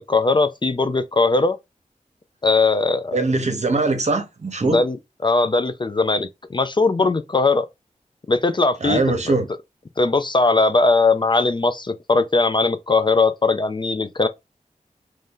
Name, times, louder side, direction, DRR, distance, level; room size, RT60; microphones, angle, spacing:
voice 1, 0.0-1.6 2.4-3.2 4.6-5.0 5.2-7.7 8.3-9.0 9.3-9.4 10.0-14.3, left 3 dB, 35° left, 0.4 m, -19 dB
voice 2, 3.1-4.8 8.8-9.5, right 3 dB, 55° right, 0.8 m, -21 dB
3.2 x 2.6 x 3.6 m
wide cardioid pair, 80°, 14 cm